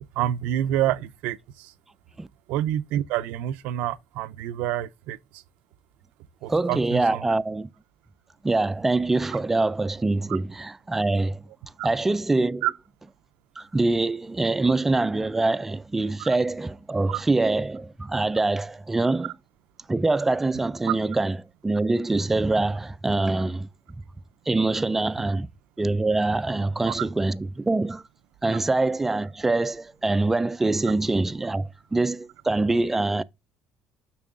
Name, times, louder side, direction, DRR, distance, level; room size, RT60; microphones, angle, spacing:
voice 1, 0.2-1.7 2.5-5.4 6.4-7.3 11.8-11.9 12.6-12.7 16.2-16.3 17.1-17.2 26.9-27.1, right 12 dB, 75° right, 0.5 m, -28 dB
voice 2, 6.5-7.7 8.4-11.4 11.8-12.7 13.6-19.3 19.9-21.4 21.6-23.7 24.5-25.5 25.8-28.0 28.4-33.2, right 2 dB, 10° right, 0.3 m, -24 dB
7.1 x 6.1 x 2.4 m
cardioid pair, 125°, 2 cm